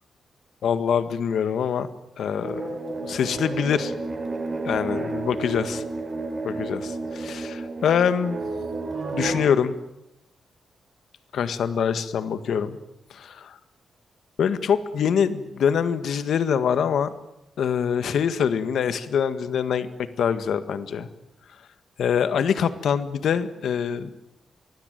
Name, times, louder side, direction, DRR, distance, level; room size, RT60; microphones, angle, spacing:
voice 1, 0.6-1.9 2.2-2.7 3.0-3.9 4.6-5.8 6.4-8.4 9.1-9.7 11.3-12.8 13.1-13.6 14.4-17.1 17.6-19.9 20.2-21.1 22.0-24.1, left 7 dB, 70° left, 12 dB, 1.7 m, -24 dB
sound 1, 2.4-9.4, right 3 dB, 30° right, 5.0 m, -31 dB
24.5 x 20.5 x 9.3 m, 0.84 s
wide cardioid pair, 175°, 0 cm